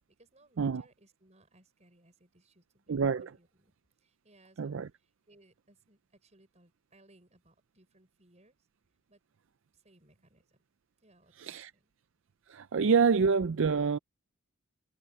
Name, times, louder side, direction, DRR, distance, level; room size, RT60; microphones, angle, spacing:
voice 1, 0.1-8.5 9.1-9.2 9.7-10.6 11.0-11.9, right 1 dB, 30° right, 6.1 m, -64 dB
voice 2, 2.9-3.3 4.6-4.9 11.4-11.7 12.5-14.0, right 5 dB, 60° right, 0.4 m, -27 dB
head